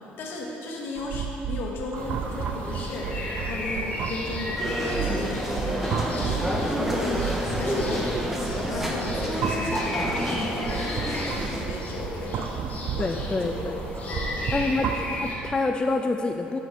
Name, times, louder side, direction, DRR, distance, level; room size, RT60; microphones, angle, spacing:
voice 1, 0.2-12.5 12.9-13.8 14.0-14.7, left 2 dB, 65° left, -1 dB, 1.1 m, -36 dB
sound 1, 1.0-15.7, right 7 dB, 55° right, 0.4 m, -33 dB
sound 2, 1.9-15.4, left 1 dB, 40° left, 1.4 m, -34 dB
sound 3, 4.6-11.6, equal, 5° right, 1.0 m, -29 dB
voice 2, 13.0-13.8 14.5-16.6, left 3 dB, 20° left, 4 dB, 0.3 m, -27 dB
6.9 x 4.1 x 4.7 m, 2.9 s
supercardioid pair, 65°, 4 cm